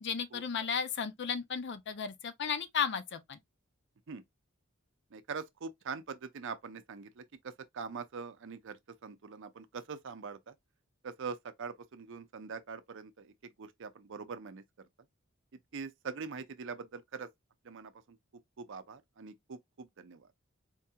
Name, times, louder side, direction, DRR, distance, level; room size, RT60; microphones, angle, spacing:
voice 1, 0.0-3.4, left 7 dB, 55° left, 0.5 m, -34 dB
voice 2, 5.1-10.5 11.0-14.6 15.7-17.3 17.6-18.2 18.6-20.3, right 5 dB, 60° right, 0.5 m, -43 dB
4.4 x 2.8 x 2.3 m
head